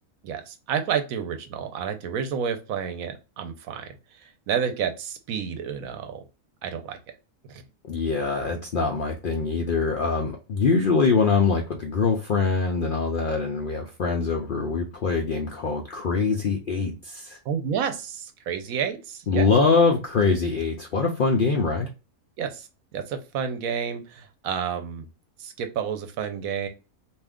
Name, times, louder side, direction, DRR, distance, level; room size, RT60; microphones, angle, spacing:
voice 1, 0.2-3.9 4.2-6.3 6.6-7.0 7.5-7.6 17.5-19.5 22.4-25.1 25.4-26.7, right 7 dB, 85° right, 7 dB, 1.1 m, -30 dB
voice 2, 7.8-17.4 19.3-21.9, left 4 dB, 70° left, 1 dB, 0.5 m, -23 dB
2.6 x 2.3 x 3.5 m, 0.31 s
omnidirectional pair, 1.4 m